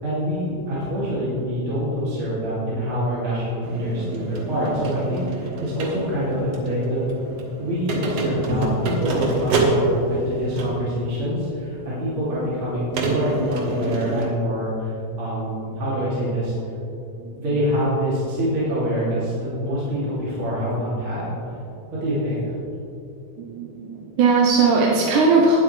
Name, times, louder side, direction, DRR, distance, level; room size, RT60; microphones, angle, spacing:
voice 1, 0.0-7.0 7.6-14.9 15.2-16.5 17.4-21.3 21.9-22.5, equal, 45° right, -10 dB, 3.6 m, -25 dB
sound 1, 3.6-10.9 11.8-11.9 12.9-14.3, right 2 dB, 60° right, 2.2 m, -27 dB
voice 2, 23.4-25.6, right 4 dB, 90° right, -2 dB, 2.5 m, -19 dB
19.0 x 7.9 x 3.4 m, 2.8 s
omnidirectional pair, 3.4 m